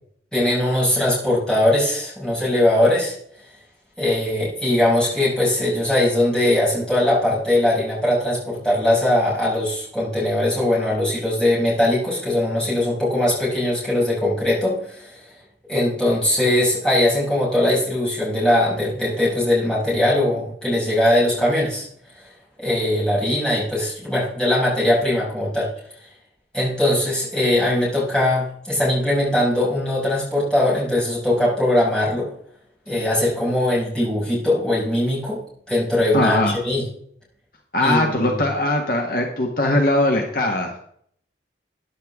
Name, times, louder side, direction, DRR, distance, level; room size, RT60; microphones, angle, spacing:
voice 1, 0.3-3.1 4.0-15.2 15.7-21.9 22.6-25.7 26.5-32.3 32.9-35.4 35.7-36.8 37.8-38.4, left 1 dB, 5° left, -7 dB, 5.8 m, -20 dB
voice 2, 36.1-36.6 37.7-40.8, left 1 dB, 50° left, 2 dB, 1.4 m, -20 dB
14.0 x 10.5 x 3.6 m, 0.66 s
head